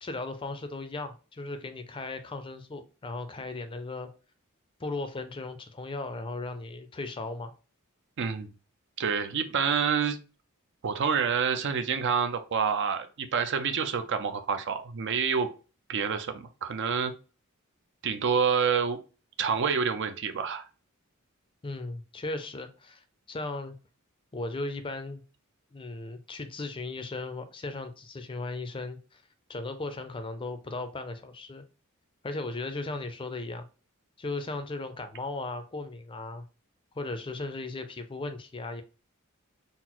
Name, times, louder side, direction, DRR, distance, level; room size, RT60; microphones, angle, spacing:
voice 1, 0.0-4.1 4.8-7.5 21.6-23.7 24.3-25.2 25.7-29.2 29.5-31.6 32.2-33.7 34.2-36.4 36.9-38.8, left 2 dB, 25° left, 0.4 m, -36 dB
voice 2, 8.2-8.5 9.0-10.2 10.8-15.5 15.9-17.1 18.0-19.0 19.4-20.6, right 6 dB, 60° right, 0.5 m, -27 dB
3.9 x 2.0 x 4.3 m
head